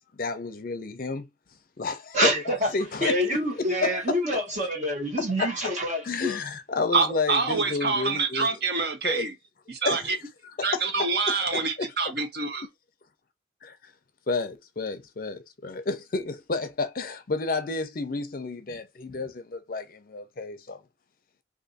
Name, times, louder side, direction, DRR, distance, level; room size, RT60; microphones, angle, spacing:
voice 1, 0.1-1.3 1.8-2.4 2.7-4.2 5.4-5.7 6.0-8.6 9.0-9.2 9.8-10.1 10.7-11.9 13.6-13.8 14.3-20.8, left 3 dB, 50° left, 0.5 m, -31 dB
voice 2, 2.1-2.7 3.0-6.4, equal, 40° right, 1.2 m, -26 dB
voice 3, 6.9-9.3 9.7-10.2 10.6-12.7, right 4 dB, 60° right, 0.8 m, -26 dB
2.6 x 2.6 x 3.9 m
head